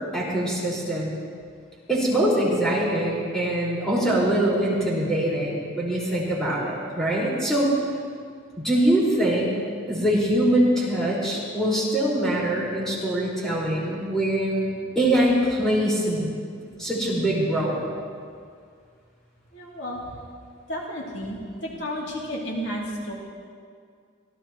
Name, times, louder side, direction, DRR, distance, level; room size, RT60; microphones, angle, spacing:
voice 1, 0.1-1.1 1.9-7.7 8.6-9.6 9.9-16.3 16.8-17.8, right 1 dB, 5° left, -7 dB, 5.0 m, -23 dB
voice 2, 19.5-20.0 20.7-23.1, equal, 70° left, -4 dB, 3.0 m, -32 dB
26.0 x 17.5 x 3.1 m, 2.2 s
head